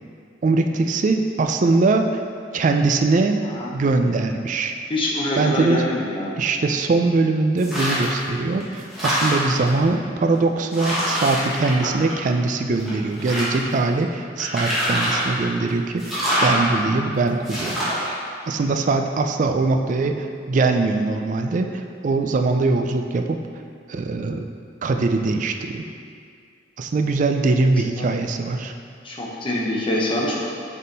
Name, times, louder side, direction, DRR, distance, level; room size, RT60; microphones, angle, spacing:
voice 1, 0.4-2.1 2.5-3.4 3.7-4.8 5.4-5.8 6.4-17.8 18.5-23.4 23.9-24.4 24.8-25.8 26.8-28.7, right 3 dB, 45° right, 5 dB, 0.3 m, -21 dB
voice 2, 4.9-6.4 28.0-28.1 29.0-30.5, left 1 dB, 30° left, -4 dB, 0.8 m, -25 dB
sound 1, 7.6-8.2 8.6-9.7 10.3-10.4 10.7-12.4 12.8-13.7 14.4-15.4 16.0-16.6 17.4-18.1, equal, ahead, 1.3 m, -24 dB
6.4 x 3.6 x 4.0 m, 2.2 s
head